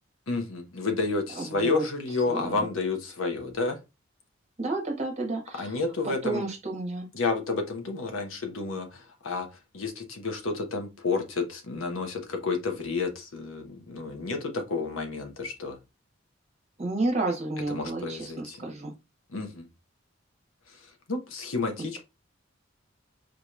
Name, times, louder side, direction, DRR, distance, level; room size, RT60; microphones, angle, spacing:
voice 1, 0.3-3.8 5.6-6.4 7.1-9.5 9.7-15.8 17.7-18.6 19.3-19.7 21.1-22.0, left 3 dB, 80° left, 4 dB, 1.1 m, -30 dB
voice 2, 1.3-1.8 2.3-2.6 4.6-5.7 6.2-7.1 16.8-18.9, right 2 dB, 35° right, 0 dB, 1.3 m, -31 dB
4.9 x 3.0 x 2.4 m, 0.25 s
head